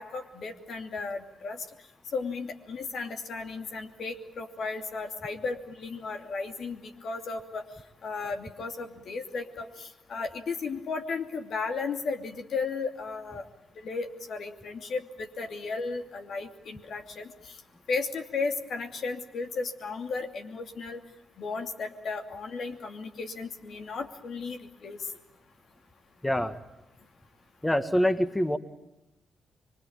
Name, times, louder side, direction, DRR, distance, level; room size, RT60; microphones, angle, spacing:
voice 1, 0.0-1.6 2.1-7.6 8.0-13.5 13.8-17.5 17.9-21.0 21.4-25.0, left 4 dB, 65° left, 5 dB, 2.7 m, -35 dB
voice 2, 26.2-26.6 27.6-28.6, equal, 10° left, 10 dB, 1.7 m, -25 dB
24.5 x 23.5 x 8.9 m, 0.95 s
supercardioid pair, 50°, 0 cm